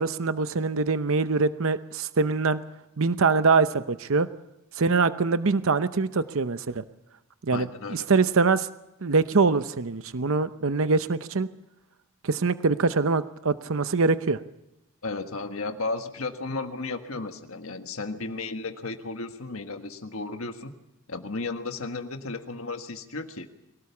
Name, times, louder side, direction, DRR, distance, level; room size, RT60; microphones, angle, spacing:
voice 1, 0.0-2.6 3.0-4.3 4.8-6.8 7.4-8.7 9.0-11.5 12.2-14.4, right 4 dB, 65° right, 12 dB, 0.7 m, -24 dB
voice 2, 7.5-8.1 15.0-20.7 21.1-23.5, left 3 dB, 65° left, 6 dB, 1.6 m, -34 dB
23.5 x 17.5 x 7.2 m, 0.92 s
head